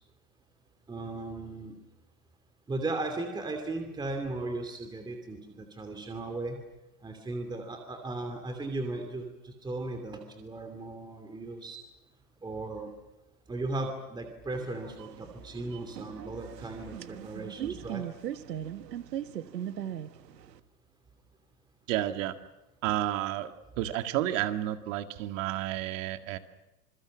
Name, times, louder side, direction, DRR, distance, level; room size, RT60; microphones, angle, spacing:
voice 1, 0.9-1.7 2.7-6.6 7.0-11.8 12.4-12.9 13.5-18.1, right 2 dB, 10° right, 5 dB, 2.7 m, -36 dB
sound 1, 14.5-20.6, right 10 dB, 90° right, 1.5 m, -39 dB
voice 2, 21.9-22.4 22.8-23.5 23.8-26.4, right 13 dB, 50° right, 8 dB, 2.0 m, -31 dB
27.0 x 22.5 x 7.4 m, 1.0 s
hypercardioid pair, 135°, 48 cm